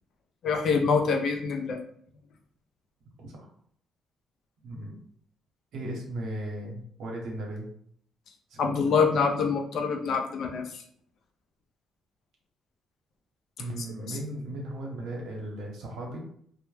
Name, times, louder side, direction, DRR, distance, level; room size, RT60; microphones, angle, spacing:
voice 1, 0.4-1.8 8.6-10.8 14.1-14.2, left 5 dB, 65° left, 3 dB, 0.4 m, -25 dB
voice 2, 4.6-5.0 5.7-7.7 8.5-8.6 13.6-16.2, right 1 dB, 75° right, -1 dB, 0.8 m, -36 dB
2.1 x 2.1 x 3.1 m, 0.63 s
cardioid pair, 75°, 0 cm